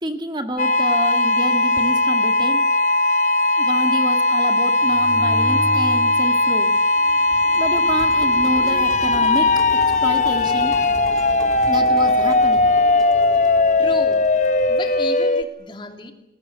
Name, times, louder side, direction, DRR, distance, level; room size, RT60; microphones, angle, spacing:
voice 1, 0.0-2.6 3.6-6.8 7.6-9.5 10.0-10.8 11.7-12.7, right 1 dB, 25° right, 6 dB, 2.0 m, -28 dB
sound 1, 0.6-15.4, left 2 dB, 45° left, 1.0 m, -18 dB
sound 2, 4.8-6.3 6.6-15.2, equal, 5° left, 3.5 m, -35 dB
voice 2, 13.8-14.2 14.7-16.1, left 2 dB, 25° left, 5 dB, 2.9 m, -34 dB
29.0 x 21.0 x 8.1 m, 0.89 s
head